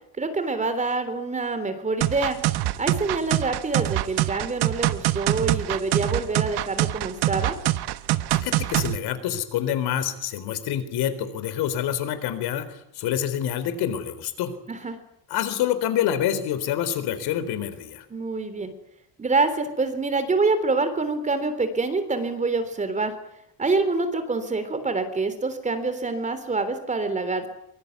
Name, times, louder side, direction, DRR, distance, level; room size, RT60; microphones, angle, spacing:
voice 1, 0.2-2.4 2.8-7.6 14.7-15.0 18.1-18.7 19.2-23.1 23.6-27.5, right 3 dB, 20° right, 10 dB, 3.5 m, -26 dB
sound 1, 2.0-9.0, right 16 dB, 75° right, 1.4 m, -24 dB
voice 2, 8.3-14.5 15.3-18.0, left 10 dB, 75° left, 12 dB, 4.1 m, -27 dB
24.5 x 24.0 x 9.5 m, 0.76 s
cardioid pair, 170°, 40 cm